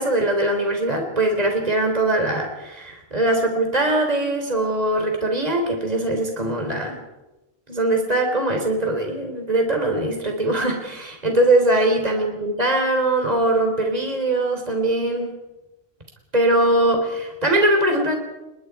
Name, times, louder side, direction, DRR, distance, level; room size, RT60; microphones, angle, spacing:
voice 1, 0.0-7.0 7.7-15.3 16.3-18.1, right 1 dB, 30° right, 3 dB, 3.7 m, -21 dB
29.0 x 22.0 x 4.8 m, 1.0 s
omnidirectional pair, 1.3 m